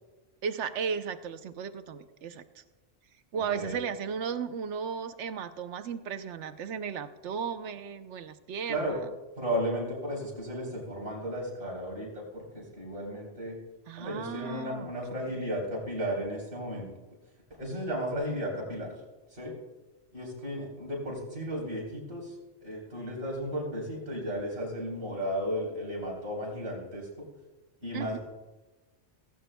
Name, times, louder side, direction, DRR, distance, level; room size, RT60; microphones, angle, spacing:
voice 1, 0.4-2.6 3.3-9.0 13.9-14.9 27.9-28.2, right 6 dB, 75° right, 11 dB, 1.0 m, -35 dB
voice 2, 3.3-3.8 8.7-9.0 9.4-13.6 14.0-16.9 17.5-18.9 19.3-19.5 20.1-22.4 22.6-27.3 27.8-28.2, equal, 60° right, -3 dB, 3.9 m, -34 dB
16.5 x 16.0 x 2.2 m, 1.1 s
omnidirectional pair, 1.2 m